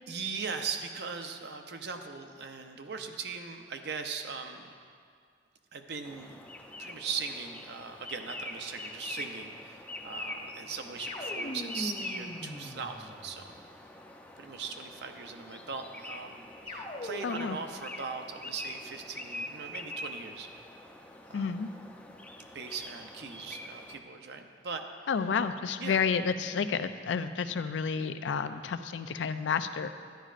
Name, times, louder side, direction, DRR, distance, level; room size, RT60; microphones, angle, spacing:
voice 1, 0.1-4.7 5.7-6.4 6.8-13.5 14.4-20.5 21.3-21.5 22.5-24.8 25.8-26.0, right 5 dB, 65° right, 5 dB, 0.6 m, -39 dB
sound 1, 6.0-24.0, left 1 dB, 10° left, 0.5 m, -44 dB
sound 2, 11.1-13.6 16.6-17.7, left 1 dB, 35° left, 0.9 m, -41 dB
voice 2, 17.2-17.6 21.3-21.7 25.1-29.9, left 6 dB, 85° left, 10 dB, 0.4 m, -30 dB
11.5 x 10.0 x 2.5 m, 2.1 s
head